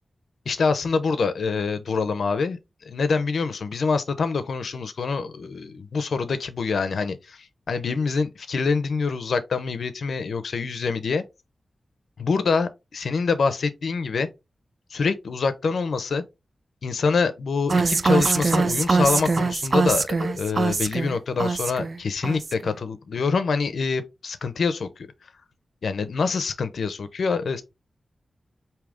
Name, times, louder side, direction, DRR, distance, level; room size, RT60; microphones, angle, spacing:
voice 1, 0.5-2.6 2.8-11.2 12.2-14.3 14.9-16.2 16.8-25.1 25.8-27.6, left 4 dB, 80° left, 0.7 m, -25 dB
sound 1, 17.7-22.0 22.2-22.7, right 4 dB, 50° right, 0.4 m, -23 dB
5.0 x 2.8 x 3.5 m
wide cardioid pair, 95°, 0 cm